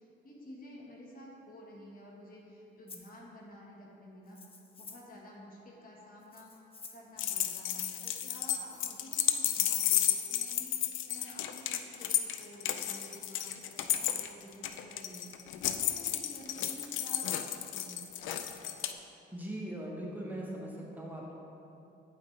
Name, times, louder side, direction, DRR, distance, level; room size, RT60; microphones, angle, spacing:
voice 1, 0.0-4.4 4.8-6.5 6.9-15.3 15.7-18.4, equal, 45° left, -3 dB, 1.5 m, -51 dB
Rattle (instrument), 2.9-3.1 4.3-5.2 6.2-7.1 8.2-9.1 10.2-10.9, left 4 dB, 30° left, 0.6 m, -52 dB
sound 1, 7.2-18.9, left 11 dB, 80° left, 0.4 m, -32 dB
voice 2, 19.3-21.3, right 1 dB, 10° right, -4 dB, 1.1 m, -40 dB
8.5 x 5.6 x 3.3 m, 2.8 s
cardioid pair, 90°, 20 cm